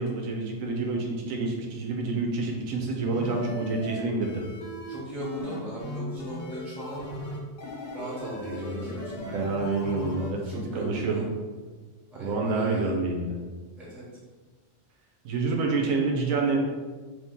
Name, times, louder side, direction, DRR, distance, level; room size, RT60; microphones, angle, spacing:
voice 1, 0.0-4.4 8.3-8.9 9.2-11.3 12.2-13.4 15.2-16.6, right 3 dB, 90° right, 1 dB, 1.1 m, -28 dB
sound 1, 3.1-10.3, equal, 55° left, 0.8 m, -38 dB
voice 2, 4.9-7.0 7.9-9.4 10.5-11.3 12.1-12.9 13.8-14.0, equal, ahead, -8 dB, 0.8 m, -38 dB
2.8 x 2.8 x 3.6 m, 1.4 s
omnidirectional pair, 1.4 m